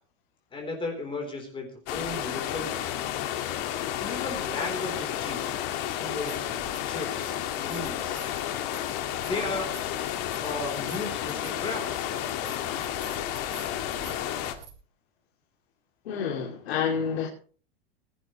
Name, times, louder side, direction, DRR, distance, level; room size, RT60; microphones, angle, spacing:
voice 1, 0.5-2.9 4.0-5.6 6.0-8.2 9.2-9.7 10.4-12.0, left 2 dB, 15° left, 2 dB, 4.0 m, -35 dB
sound 1, 1.9-14.5, left 11 dB, 50° left, 2.2 m, -31 dB
sound 2, 4.3-4.4 6.0-6.9 7.2-14.7, right 7 dB, 65° right, 4.0 m, -49 dB
voice 2, 16.0-17.3, left 6 dB, 90° left, 1 dB, 3.0 m, -28 dB
20.5 x 12.5 x 3.2 m, 0.41 s
supercardioid pair, 145°, 30 cm